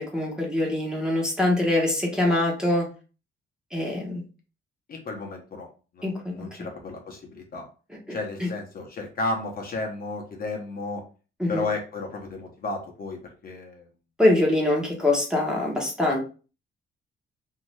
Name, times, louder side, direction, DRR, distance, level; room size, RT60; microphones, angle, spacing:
voice 1, 0.0-2.9 3.7-4.2 6.0-6.3 8.4-8.5 11.4-11.7 14.2-16.2, left 1 dB, 5° right, -1 dB, 1.0 m, -23 dB
voice 2, 4.9-5.7 5.9-7.7 8.1-11.0 11.5-13.9, left 3 dB, 50° left, 1 dB, 0.8 m, -33 dB
2.7 x 2.5 x 3.2 m, 0.36 s
cardioid pair, 90°, 20 cm